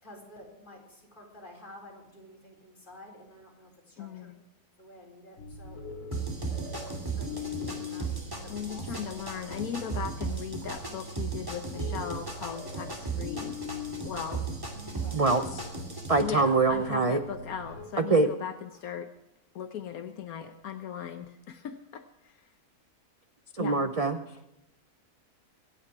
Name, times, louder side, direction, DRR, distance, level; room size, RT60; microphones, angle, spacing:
voice 1, 0.0-4.4 4.8-5.8 7.2-9.1 15.0-15.2 17.9-18.0, left 1 dB, 30° left, -2 dB, 4.2 m, -51 dB
voice 2, 4.0-4.4 8.5-13.6 14.0-14.4 16.2-19.1 19.5-22.5 23.6-23.8, left 8 dB, 70° left, 8 dB, 1.3 m, -38 dB
sound 1, 5.4-17.8, left 3 dB, 50° left, 4.5 m, -42 dB
sound 2, 6.1-16.2, right 4 dB, 15° right, 2.4 m, -36 dB
voice 3, 16.1-17.2 18.0-18.3 23.5-24.2, right 3 dB, 40° right, 8 dB, 0.5 m, -24 dB
25.0 x 9.0 x 4.7 m, 0.89 s
omnidirectional pair, 1.6 m